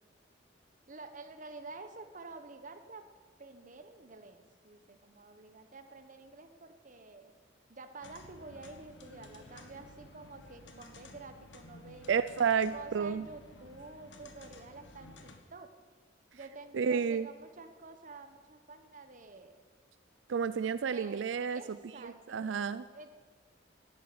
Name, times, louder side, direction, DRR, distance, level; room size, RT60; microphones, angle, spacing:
voice 1, 0.9-3.1 3.4-7.3 7.7-12.1 12.7-15.7 16.3-19.5 20.8-22.5 22.9-23.1, right 3 dB, 45° right, 8 dB, 1.2 m, -49 dB
sound 1, 8.0-15.4, left 2 dB, 85° left, 1.5 m, -54 dB
voice 2, 12.1-13.2 16.7-17.3 20.3-21.6 22.0-22.8, right 6 dB, 90° right, 14 dB, 0.4 m, -30 dB
12.0 x 10.5 x 8.6 m, 1.5 s
head